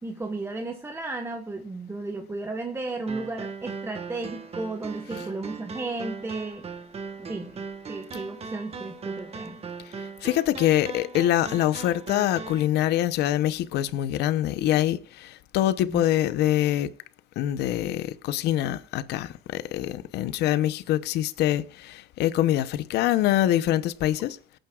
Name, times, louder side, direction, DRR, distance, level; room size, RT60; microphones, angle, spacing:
voice 1, 0.0-6.6 7.2-7.6 7.9-9.6 15.9-16.0, right 3 dB, 15° right, 1.2 m, -34 dB
sound 1, 3.1-12.7, right 5 dB, 35° right, 1.5 m, -39 dB
voice 2, 10.2-16.9 17.4-24.4, left 13 dB, 80° left, 0.8 m, -24 dB
23.0 x 9.0 x 2.4 m
cardioid pair, 110°, 17 cm